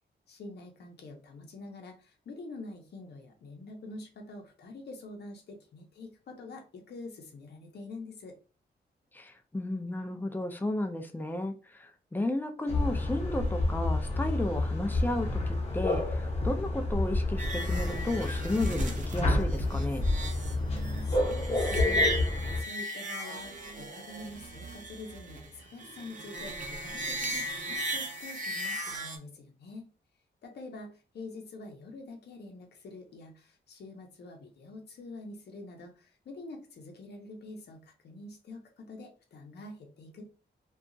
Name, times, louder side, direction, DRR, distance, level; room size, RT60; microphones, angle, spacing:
voice 1, 0.3-8.3 20.6-29.9 30.4-40.2, left 2 dB, 65° left, 2 dB, 0.7 m, -46 dB
voice 2, 9.1-11.5 11.8-20.0, left 1 dB, 10° left, 6 dB, 0.4 m, -33 dB
sound 1, 12.7-22.6, left 2 dB, 35° left, 0.7 m, -29 dB
sound 2, 17.4-29.2, equal, 45° right, 0.6 m, -36 dB
2.8 x 2.3 x 2.5 m, 0.35 s
wide cardioid pair, 150°, 18 cm